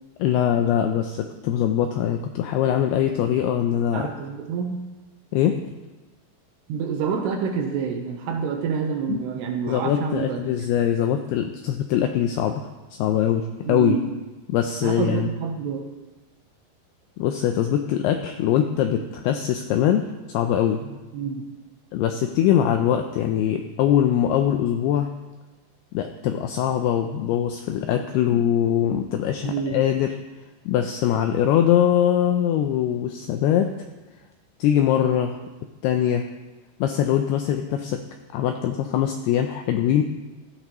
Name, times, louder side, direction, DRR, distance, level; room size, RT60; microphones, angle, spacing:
voice 1, 0.2-4.1 5.3-5.6 9.1-9.2 9.7-12.7 13.0-14.0 14.5-15.3 17.2-20.8 21.9-25.1 25.9-30.2 30.7-33.7 34.6-35.4 35.8-36.3 36.8-38.0 38.3-40.0, left 10 dB, 85° left, 5 dB, 2.3 m, -22 dB
voice 2, 3.9-4.9 6.7-10.4 13.6-14.1 14.8-15.9 20.8-21.5 29.4-29.8, right 6 dB, 75° right, 3 dB, 2.8 m, -28 dB
17.5 x 13.0 x 3.0 m, 1.2 s
omnidirectional pair, 5.3 m